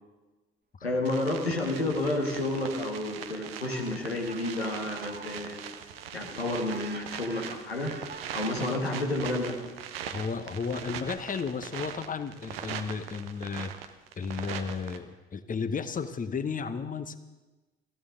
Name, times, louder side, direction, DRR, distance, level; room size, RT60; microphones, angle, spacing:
voice 1, 0.8-5.6 6.1-7.9 8.3-9.6, left 2 dB, 90° left, 1 dB, 1.4 m, -30 dB
sound 1, 1.0-15.0, right 9 dB, 75° right, 0.8 m, -41 dB
Fowl, 2.0-8.7 9.5-11.5, right 4 dB, 35° right, 1.6 m, -48 dB
voice 2, 10.0-13.7 14.2-17.2, left 5 dB, 25° left, 12 dB, 0.9 m, -33 dB
20.0 x 14.0 x 3.8 m, 1.2 s
figure-of-eight pair, 45°, 30 cm